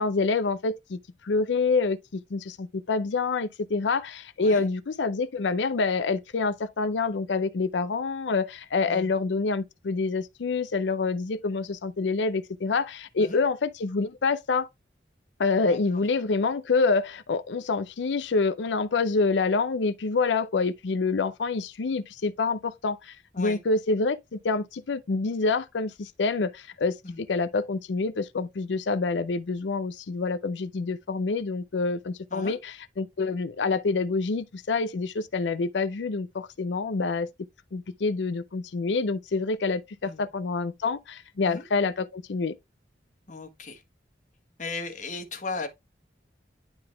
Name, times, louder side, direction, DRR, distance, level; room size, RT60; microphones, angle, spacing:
voice 1, 0.0-14.7 15.4-37.3 37.7-42.5, left 4 dB, 85° left, 0.5 m, -27 dB
voice 2, 4.4-4.7 8.9-9.1 13.2-13.4 15.6-16.0 23.3-23.6 27.0-27.2 32.3-32.6 40.0-40.3 41.4-41.7 43.3-43.8 44.6-45.7, left 3 dB, 45° left, 1.4 m, -37 dB
9.6 x 3.9 x 3.4 m
head